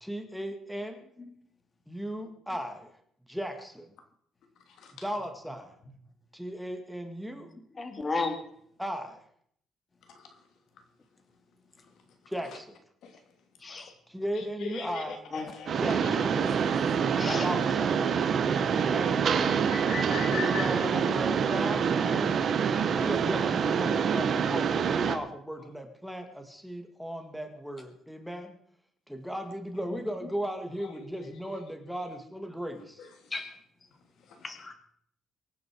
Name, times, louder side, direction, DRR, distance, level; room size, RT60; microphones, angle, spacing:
voice 1, 0.0-1.1 1.9-2.9 3.3-3.9 5.0-5.8 6.3-7.5 8.8-9.2 12.3-12.8 14.1-15.2 15.8-16.3 17.1-18.1 18.7-19.2 20.1-22.3 22.9-28.5 29.1-33.1, equal, ahead, 5 dB, 1.9 m, -36 dB
voice 2, 7.8-8.4 13.6-13.9 15.3-15.4 17.2-17.5 29.7-30.0 33.3-33.4 34.4-34.7, left 3 dB, 25° left, 6 dB, 2.3 m, -33 dB
voice 3, 14.6-15.8 16.1-17.5 18.1-18.2 19.2-20.7 31.2-31.3 33.0-33.1, left 4 dB, 70° left, 5 dB, 2.9 m, -39 dB
Mechanisms, 15.7-25.2, right 7 dB, 45° right, 1.5 m, -26 dB
24.0 x 9.5 x 4.7 m, 0.65 s
cardioid pair, 135°, 0 cm